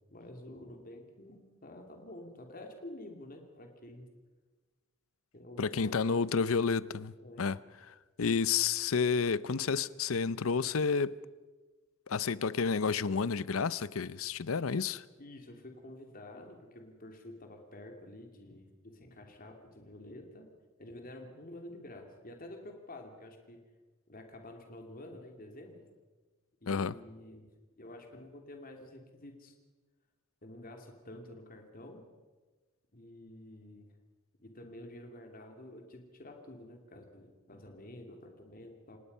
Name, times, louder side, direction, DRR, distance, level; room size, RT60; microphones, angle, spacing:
voice 1, 0.1-4.1 5.3-6.7 7.2-7.4 15.2-20.5 20.8-23.6 24.1-25.9 26.6-27.5 27.8-29.5 30.4-32.0 32.9-33.9 34.4-39.0, left 1 dB, 45° left, 3.0 m, -49 dB
voice 2, 5.6-7.6 7.9-11.2 12.1-15.0 26.7-27.0, left 5 dB, 80° left, 0.6 m, -30 dB
30.0 x 18.0 x 5.5 m
head